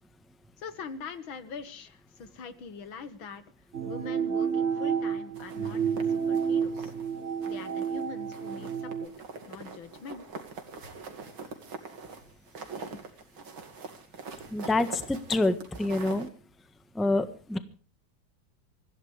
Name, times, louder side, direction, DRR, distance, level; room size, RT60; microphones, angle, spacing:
voice 1, 0.6-3.4 3.9-6.9 7.4-9.1 9.5-10.2, left 5 dB, 80° left, 12 dB, 2.4 m, -43 dB
sound 1, 3.7-9.1, right 7 dB, 40° right, 1.5 m, -30 dB
sound 2, 5.4-7.1 7.4-8.0 8.3-16.3, right 4 dB, 85° right, 3.2 m, -43 dB
voice 2, 14.5-16.3 16.9-17.6, left 2 dB, ahead, 11 dB, 1.1 m, -27 dB
25.0 x 15.5 x 3.4 m, 0.38 s
omnidirectional pair, 2.1 m